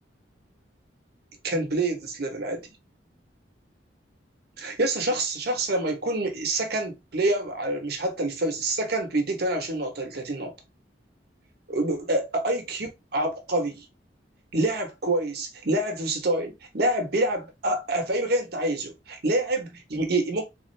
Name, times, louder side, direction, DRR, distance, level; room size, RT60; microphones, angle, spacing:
voice 1, 1.4-2.7 4.6-10.5 11.7-13.8 14.5-20.4, right 2 dB, 60° right, 1.0 m, -27 dB
3.5 x 2.5 x 3.2 m
head